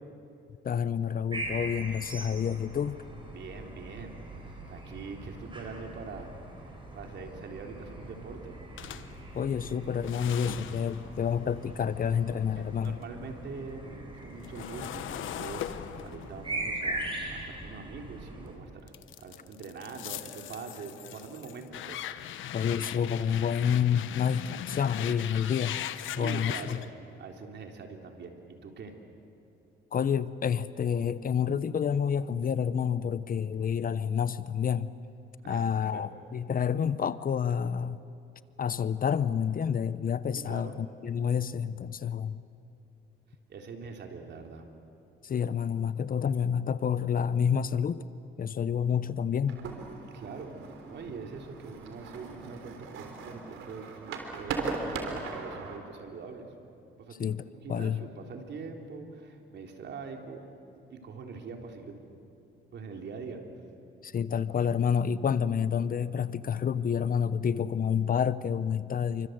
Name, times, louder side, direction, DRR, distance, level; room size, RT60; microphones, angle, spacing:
voice 1, 0.6-3.0 9.3-13.0 22.5-25.8 26.2-26.8 29.9-34.9 35.5-38.0 38.6-42.4 45.2-48.0 48.4-49.6 57.2-57.4 57.7-58.0 64.0-69.3, left 7 dB, 45° left, 15 dB, 0.9 m, -29 dB
sound 1, 1.3-18.6, right 2 dB, 25° right, 6.4 m, -41 dB
voice 2, 3.3-6.3 6.9-8.6 12.6-18.9 19.2-22.0 26.1-26.8 27.2-28.9 35.4-35.7 35.9-36.1 40.5-40.8 43.5-44.7 50.1-50.6 50.9-56.5 57.0-60.6 60.9-62.0 62.7-63.4, right 4 dB, 60° right, 3 dB, 3.7 m, -43 dB
sound 2, 8.8-13.0 13.4-18.3 18.9-26.9, left 11 dB, 80° left, 1.1 m, -40 dB
sound 3, 49.5-55.8, right 4 dB, 85° right, 3.6 m, -38 dB
28.5 x 25.0 x 8.0 m, 2.7 s
cardioid pair, 90°, 20 cm